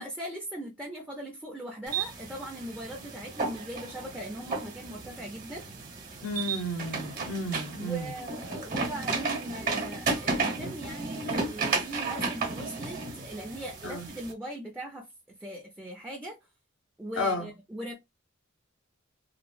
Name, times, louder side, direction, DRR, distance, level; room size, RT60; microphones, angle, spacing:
voice 1, 0.0-5.7 7.8-15.1 15.4-16.4 17.0-17.9, right 1 dB, 10° right, 0.5 m, -40 dB
sound 1, 1.9-14.3, right 4 dB, 45° right, 1.0 m, -33 dB
voice 2, 6.2-8.1 13.8-14.1 17.2-17.5, left 1 dB, 75° left, 0.7 m, -32 dB
3.0 x 2.3 x 2.5 m
head